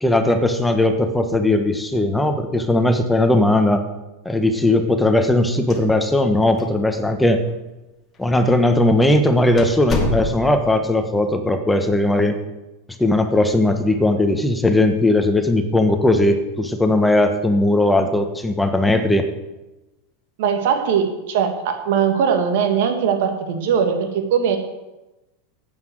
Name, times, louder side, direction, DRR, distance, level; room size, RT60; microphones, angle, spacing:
voice 1, 0.0-3.8 4.2-7.4 8.2-12.4 13.0-19.3, left 1 dB, 5° left, 6 dB, 1.3 m, -18 dB
sound 1, 5.5-6.3 6.6-6.7 7.4-7.5 8.3-8.5 8.9-9.0 9.6-10.7, left 3 dB, 25° left, 2.9 m, -26 dB
voice 2, 20.4-24.6, right 7 dB, 65° right, 5 dB, 2.2 m, -20 dB
9.2 x 8.6 x 7.8 m, 1.0 s
hypercardioid pair, 100°, 0 cm